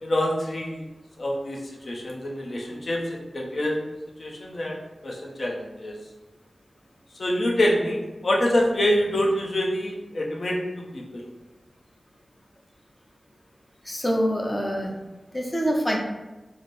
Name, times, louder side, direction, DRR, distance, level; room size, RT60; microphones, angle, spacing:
voice 1, 0.0-0.8 1.2-1.6 1.9-3.8 4.2-4.8 5.0-6.0 7.2-11.2, left 1 dB, 65° left, -1 dB, 0.7 m, -26 dB
voice 2, 13.9-14.9 15.3-16.0, equal, 20° left, 0 dB, 0.7 m, -25 dB
4.2 x 2.1 x 3.3 m, 1.1 s
wide cardioid pair, 60°, 0 cm